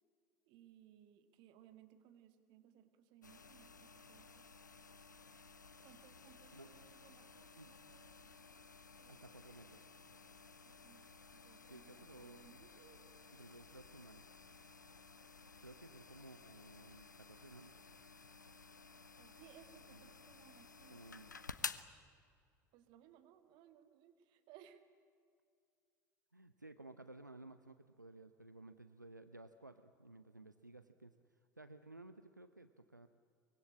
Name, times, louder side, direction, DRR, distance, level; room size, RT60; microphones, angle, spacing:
voice 1, 0.5-4.5 5.8-8.4 9.0-9.3 10.8-13.1 19.2-21.0 22.7-24.8, right 10 dB, 50° right, 9 dB, 2.1 m, -63 dB
sound 1, 3.2-21.8, left 5 dB, 80° left, 0.8 m, -54 dB
voice 2, 9.1-9.9 11.7-12.6 13.3-14.2 15.6-17.7 19.9-20.2 20.9-21.3 26.3-33.1, right 2 dB, 90° right, 11 dB, 0.7 m, -56 dB
24.0 x 23.0 x 8.7 m, 2.3 s
figure-of-eight pair, 70°, 10 cm